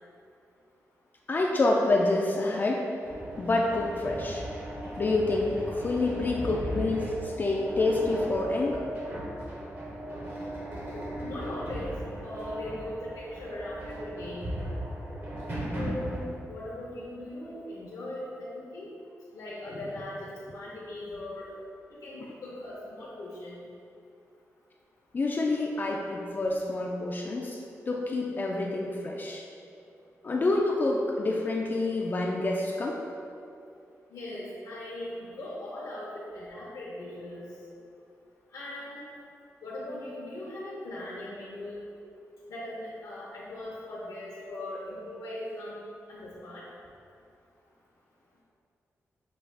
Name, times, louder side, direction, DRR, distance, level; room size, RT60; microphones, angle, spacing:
voice 1, 1.3-2.9 3.4-4.4 5.0-8.8 25.1-27.6 27.9-29.4 30.2-33.0, left 2 dB, 35° left, -1 dB, 0.3 m, -27 dB
sound 1, 3.0-16.2, right 1 dB, 40° right, 0.8 m, -37 dB
voice 2, 10.8-11.9 12.2-14.5 15.7-18.9 19.3-21.5 21.9-23.6 34.1-37.4 38.5-39.1 39.6-41.8 42.5-45.7 46.1-46.6, left 1 dB, 80° left, -8 dB, 0.8 m, -39 dB
6.0 x 2.3 x 3.3 m, 2.5 s
wide cardioid pair, 110°, 6 cm